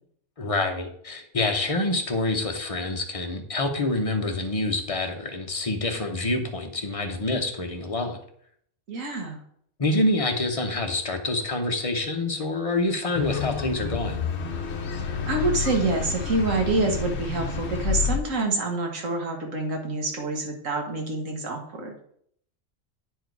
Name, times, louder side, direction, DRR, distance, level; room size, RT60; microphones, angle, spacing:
voice 1, 0.4-8.2 9.8-14.2, left 2 dB, 30° left, 4 dB, 0.9 m, -27 dB
voice 2, 8.9-9.4 15.1-21.9, right 2 dB, 85° right, 2 dB, 1.8 m, -27 dB
sound 1, 13.1-18.2, left 6 dB, 60° left, 1.0 m, -29 dB
9.1 x 4.7 x 4.6 m, 0.67 s
omnidirectional pair, 1.3 m